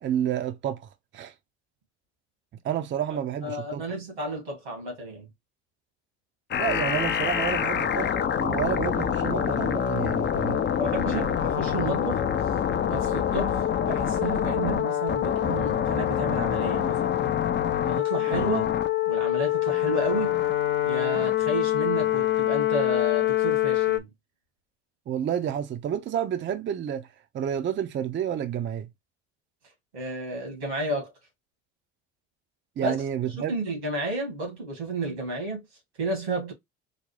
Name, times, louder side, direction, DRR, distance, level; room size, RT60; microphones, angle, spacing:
voice 1, 0.0-1.3 2.6-3.8 6.6-10.7 25.1-28.9 32.8-33.5, right 9 dB, 35° right, 0.5 m, -30 dB
voice 2, 3.4-5.3 10.8-12.2 12.8-17.2 17.9-18.7 19.1-20.4 20.9-24.1 29.9-31.1 32.8-33.0 33.5-35.6 36.0-36.5, right 1 dB, 90° right, 1.9 m, -31 dB
sound 1, 6.5-24.0, left 10 dB, 35° left, 0.6 m, -25 dB
3.9 x 2.1 x 3.2 m
hypercardioid pair, 60°, 32 cm